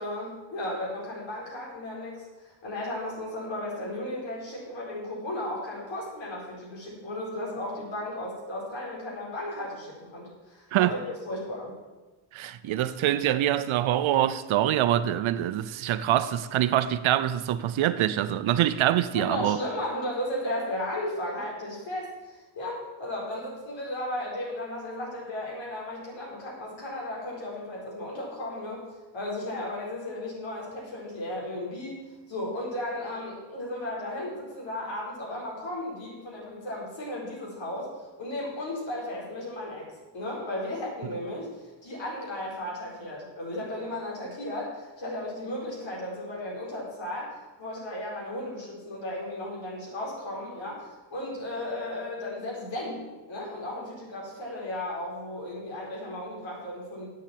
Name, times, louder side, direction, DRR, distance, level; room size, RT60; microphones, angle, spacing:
voice 1, 0.0-11.0 11.3-11.7 19.1-28.8 29.1-32.0 32.3-37.9 38.2-57.1, left 1 dB, 70° left, 4.6 m, -35 dB
voice 2, 12.3-19.6, right 12 dB, 85° right, 0.7 m, -25 dB
8.2 x 7.4 x 8.8 m
cardioid pair, 105°, 47 cm